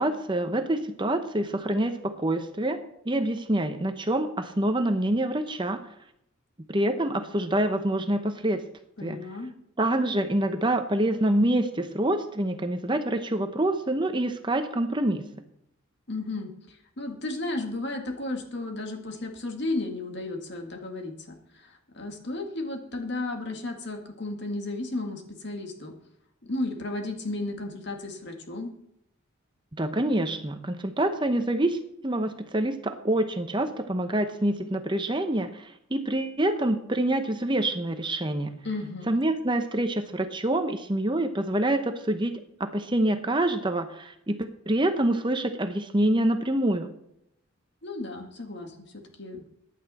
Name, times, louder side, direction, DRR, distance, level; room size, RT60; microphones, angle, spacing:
voice 1, 0.0-2.8 3.1-5.8 6.6-8.6 9.0-9.2 9.8-15.3 29.7-31.8 32.0-38.6 39.1-42.3 42.6-46.9, right 1 dB, 20° right, 7 dB, 0.8 m, -26 dB
voice 2, 9.0-9.5 16.1-25.9 26.4-28.7 38.6-39.1 47.8-49.4, left 2 dB, 55° left, 4 dB, 2.0 m, -34 dB
15.0 x 10.0 x 4.2 m, 0.78 s
head